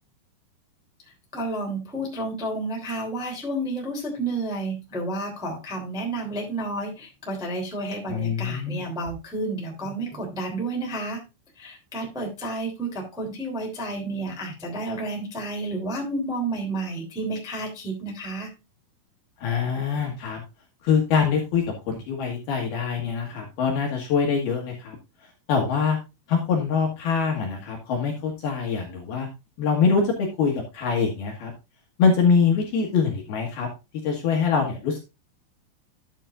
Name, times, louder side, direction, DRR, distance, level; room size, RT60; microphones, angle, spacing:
voice 1, 1.3-11.2 11.5-18.5, right 2 dB, ahead, -1 dB, 1.6 m, -31 dB
voice 2, 8.1-8.8 19.4-20.4 20.8-25.0 25.5-26.0 26.3-29.3 29.6-31.5 32.0-33.7 34.0-35.0, left 5 dB, 65° left, 1 dB, 2.9 m, -24 dB
12.0 x 7.9 x 2.5 m, 0.26 s
omnidirectional pair, 5.9 m